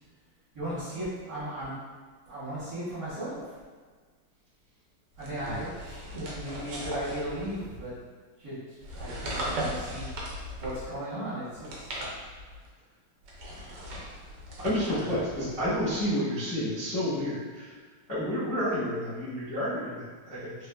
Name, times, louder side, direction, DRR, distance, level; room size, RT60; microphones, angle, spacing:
voice 1, 0.5-1.7 2.3-3.4 5.2-7.9 8.4-8.6 8.9-10.1 10.6-12.0 13.5-14.2 14.9-15.2, right 1 dB, 50° right, -12 dB, 1.3 m, -37 dB
sound 1, 5.2-7.9 8.8-11.0 11.5-12.7 13.2-16.1, equal, 70° right, 1.1 m, -38 dB
voice 2, 14.6-17.7 18.1-20.7, equal, 15° left, -13 dB, 0.6 m, -30 dB
3.7 x 2.5 x 2.3 m, 1.5 s
omnidirectional pair, 2.4 m